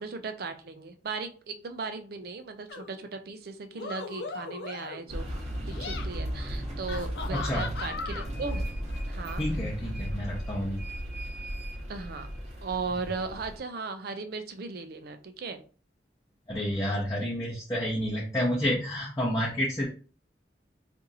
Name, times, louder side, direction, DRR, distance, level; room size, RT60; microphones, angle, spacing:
voice 1, 0.0-5.3 5.7-8.6 9.1-9.4 11.9-12.3 12.6-15.6, right 4 dB, 55° right, 8 dB, 0.5 m, -37 dB
sound 1, 2.7-3.0 3.7-5.1 5.6-6.1 6.9-8.3, left 4 dB, 70° left, 0.5 m, -38 dB
sound 2, 5.1-13.6, equal, 35° right, 0.8 m, -35 dB
voice 2, 7.3-7.7 9.4-10.8 16.5-19.9, equal, 20° left, -5 dB, 0.7 m, -29 dB
2.7 x 2.6 x 3.9 m, 0.40 s
head